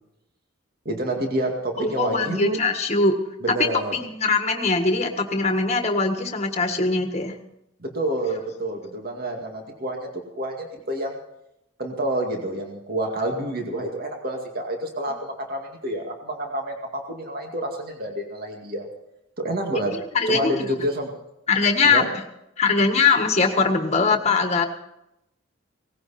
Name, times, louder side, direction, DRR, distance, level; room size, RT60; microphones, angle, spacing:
voice 1, 0.9-2.6 3.4-3.9 7.8-10.0 10.3-11.2 11.8-18.9 19.4-20.0 20.3-21.1 21.8-22.1, right 1 dB, 45° right, 2 dB, 2.2 m, -28 dB
voice 2, 1.8-3.1 3.5-7.3 20.1-20.7 21.5-22.0 22.6-24.7, left 4 dB, 30° left, 5 dB, 1.6 m, -21 dB
18.5 x 16.0 x 4.3 m, 0.84 s
head